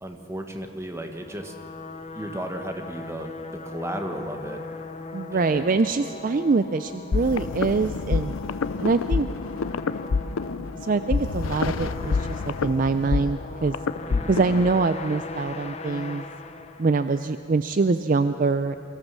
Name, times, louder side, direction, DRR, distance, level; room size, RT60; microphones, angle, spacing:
voice 1, 0.0-1.5 2.1-4.6 5.3-5.8 14.1-14.5, right 1 dB, 15° right, 4 dB, 1.3 m, -34 dB
sound 1, 1.1-17.4, left 3 dB, 30° left, 0.8 m, -39 dB
voice 2, 5.1-8.4 8.8-9.3 10.8-13.8 14.3-16.2 16.8-18.8, right 4 dB, 40° right, 10 dB, 0.4 m, -24 dB
sound 2, 7.1-14.7, left 4 dB, 80° left, 0.5 m, -27 dB
23.5 x 15.0 x 7.4 m, 2.7 s
head